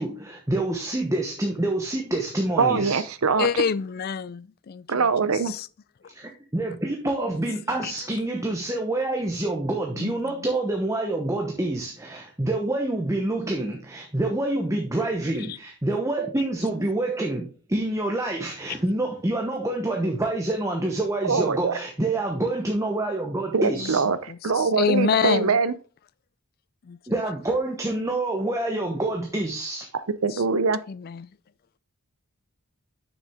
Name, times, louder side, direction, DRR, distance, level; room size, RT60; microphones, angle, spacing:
voice 1, 0.0-3.0 6.1-24.0 27.1-29.9, right 2 dB, 15° right, 1.0 m, -27 dB
voice 2, 2.6-3.5 4.9-5.5 21.2-21.7 23.5-24.2 24.4-25.7 30.2-30.8, right 5 dB, 75° right, 0.7 m, -22 dB
voice 3, 3.4-5.1 5.5-5.7 7.8-7.9 10.0-10.2 23.8-25.6 26.9-27.0 30.3-30.4 30.9-31.3, left 6 dB, 45° left, 0.3 m, -27 dB
7.0 x 6.3 x 3.6 m
head